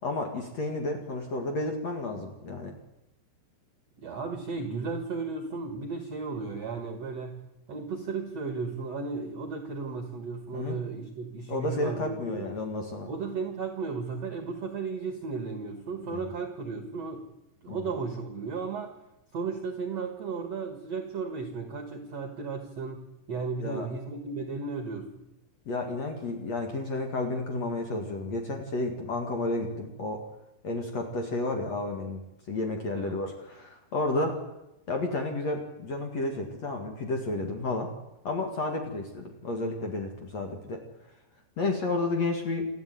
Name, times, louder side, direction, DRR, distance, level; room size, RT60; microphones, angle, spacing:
voice 1, 0.0-2.7 10.5-10.8 11.5-13.1 16.1-16.3 17.7-17.8 23.6-23.9 25.7-30.2 30.6-32.2 32.5-34.4 34.9-37.9 38.2-40.8 41.6-42.7, left 2 dB, 45° left, 3 dB, 2.6 m, -31 dB
voice 2, 4.0-7.4 7.7-12.5 13.1-17.3 17.6-19.0 19.3-25.2 32.9-33.2, right 4 dB, 55° right, 7 dB, 1.9 m, -35 dB
28.5 x 11.0 x 9.4 m, 0.94 s
omnidirectional pair, 5.5 m